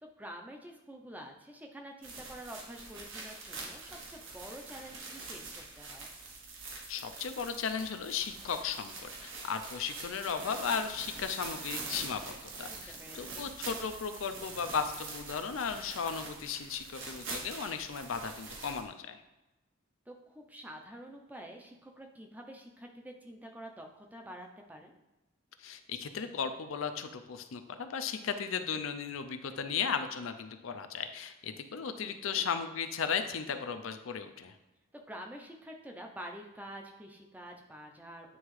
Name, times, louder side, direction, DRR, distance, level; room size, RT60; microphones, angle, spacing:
voice 1, 0.0-6.1 12.7-13.5 20.1-24.9 32.0-32.4 34.9-38.4, equal, 10° right, 2 dB, 0.5 m, -48 dB
sound 1, 2.0-18.8, right 3 dB, 70° right, 1.2 m, -44 dB
voice 2, 6.9-19.2 25.6-34.5, left 6 dB, 75° left, 8 dB, 0.5 m, -36 dB
9.3 x 3.5 x 3.2 m, 1.0 s
head